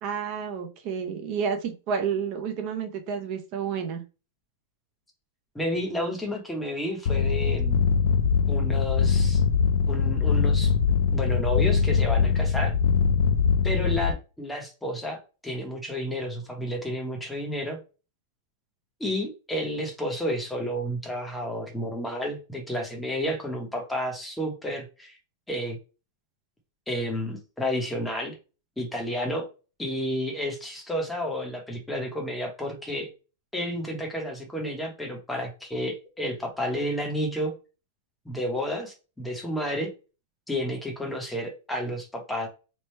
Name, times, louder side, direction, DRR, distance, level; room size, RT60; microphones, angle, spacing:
voice 1, 0.0-4.0, right 6 dB, 35° right, 0.6 m, -30 dB
voice 2, 5.5-7.8 8.5-9.4 9.9-10.7 11.1-12.7 13.6-17.8 19.0-25.2 25.5-25.8 26.9-28.3 28.8-29.5 29.8-33.1 33.5-37.5 38.2-39.9 40.5-42.5, equal, 5° left, 0.8 m, -31 dB
sound 1, 7.1-14.1, left 6 dB, 55° left, 0.3 m, -22 dB
3.2 x 2.2 x 4.2 m
supercardioid pair, 170°, 0 cm